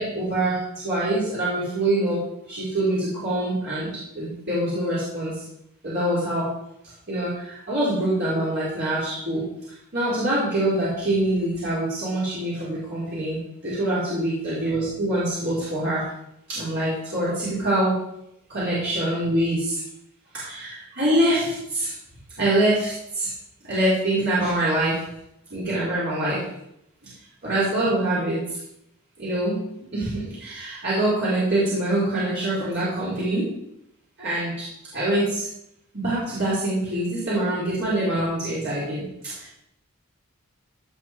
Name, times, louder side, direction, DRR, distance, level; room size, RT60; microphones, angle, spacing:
voice 1, 0.0-3.9 4.1-5.4 5.8-6.5 7.1-9.4 9.9-16.0 16.5-18.0 18.5-19.8 20.3-21.9 22.4-23.3 23.6-25.0 25.5-26.4 27.0-27.1 27.4-28.6 29.2-29.6 29.9-33.5 34.2-34.7 34.9-35.5 35.9-39.6, right 1 dB, 50° right, -10 dB, 5.0 m, -25 dB
16.5 x 7.4 x 4.9 m, 0.80 s
head